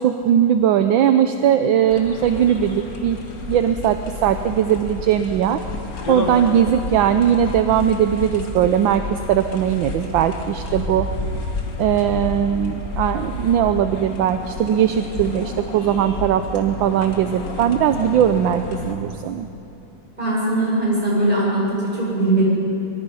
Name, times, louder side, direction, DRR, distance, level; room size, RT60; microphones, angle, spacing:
voice 1, 0.0-3.2 3.5-5.6 6.1-11.1 11.8-19.5, right 9 dB, 70° right, 8 dB, 1.3 m, -19 dB
sound 1, 1.9-19.0, left 2 dB, 45° left, 1.9 m, -31 dB
voice 2, 20.2-22.4, right 2 dB, 20° right, -6 dB, 7.4 m, -20 dB
23.5 x 22.5 x 5.6 m, 2.8 s
omnidirectional pair, 2.4 m